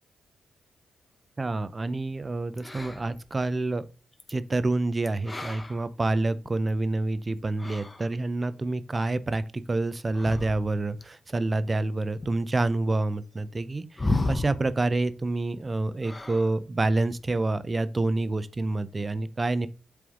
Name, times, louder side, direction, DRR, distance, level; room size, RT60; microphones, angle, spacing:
voice 1, 1.4-3.8 4.3-19.7, right 2 dB, 30° right, 0.6 m, -28 dB
sound 1, 2.6-3.3 4.1-4.3 5.1-6.7 7.4-8.1 10.1-11.0 12.2-12.3 14.0-14.8 16.0-16.6 16.9-17.2, left 2 dB, 20° left, 0.8 m, -33 dB
7.9 x 3.4 x 3.8 m
cardioid pair, 75°, 0 cm